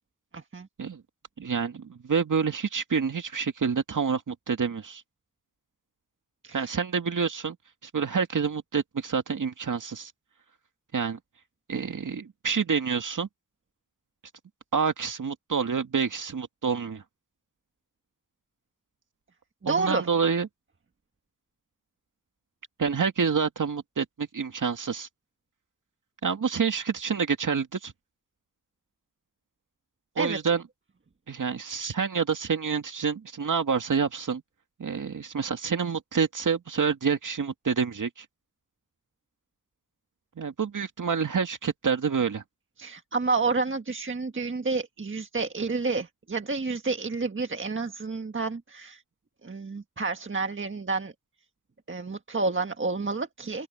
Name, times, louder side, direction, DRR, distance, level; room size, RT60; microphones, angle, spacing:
voice 1, 0.3-0.7 6.4-6.8 19.6-20.1 30.2-30.4 42.8-49.0 49.4-51.1 51.9-53.7, right 3 dB, 35° right, 1.6 m, -29 dB
voice 2, 1.4-5.0 6.5-7.6 7.8-10.1 10.9-11.2 11.7-13.3 14.7-17.0 19.7-20.5 22.8-25.1 26.2-27.9 30.2-30.6 31.3-34.4 34.8-38.3 40.4-42.4, right 6 dB, 65° right, 2.2 m, -28 dB
open air
cardioid pair, 55°, 34 cm